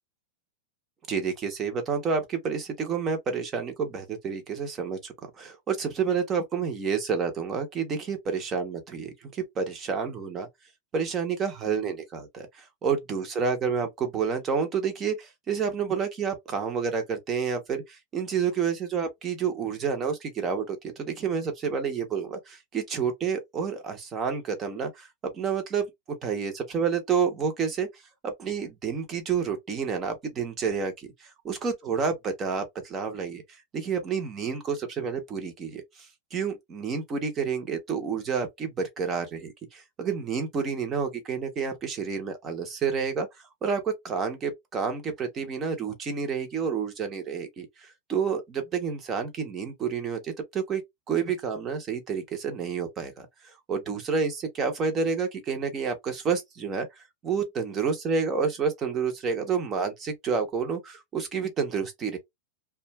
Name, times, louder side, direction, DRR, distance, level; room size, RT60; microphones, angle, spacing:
voice 1, 1.1-10.5 10.9-25.1 25.3-27.9 28.2-32.1 32.4-33.4 33.7-43.3 43.6-50.8 51.1-53.3 53.7-56.9 57.2-62.2, right 6 dB, 25° right, 0.8 m, -29 dB
2.4 x 2.3 x 2.9 m
supercardioid pair, 155°, 0 cm